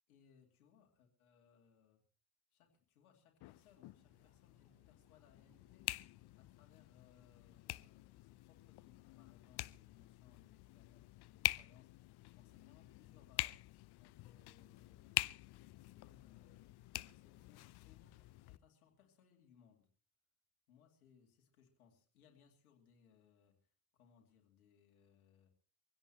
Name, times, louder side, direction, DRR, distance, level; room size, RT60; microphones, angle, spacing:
voice 1, 0.1-2.0 2.5-6.0 6.3-15.3 15.8-19.9 20.7-25.5, left 7 dB, 85° left, 2 dB, 2.6 m, -69 dB
sound 1, 3.4-18.6, left 19 dB, 65° left, 0.7 m, -46 dB
sound 2, 3.7-6.8, right 2 dB, 55° right, 7.0 m, -80 dB
24.0 x 16.5 x 2.9 m, 0.37 s
hypercardioid pair, 45°, 42 cm